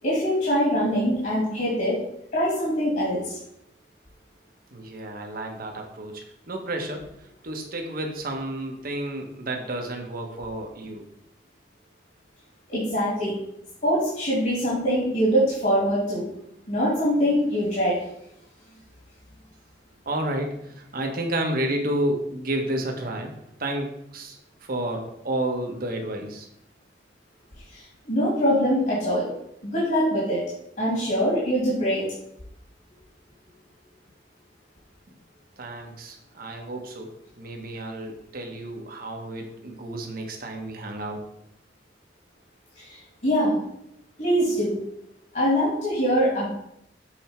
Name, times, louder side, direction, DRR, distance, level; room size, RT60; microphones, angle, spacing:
voice 1, 0.0-2.0 2.3-3.4 12.7-13.3 13.8-16.3 16.7-18.0 27.7-29.2 29.6-30.4 30.8-32.1 42.8-43.0 43.2-43.5 44.2-44.8 45.3-46.5, equal, 55° left, -6 dB, 2.7 m, -23 dB
voice 2, 4.7-7.1 7.4-11.0 20.0-23.3 23.6-26.5 35.6-41.2, right 1 dB, 55° right, 2 dB, 1.3 m, -31 dB
7.8 x 4.5 x 4.5 m, 0.77 s
head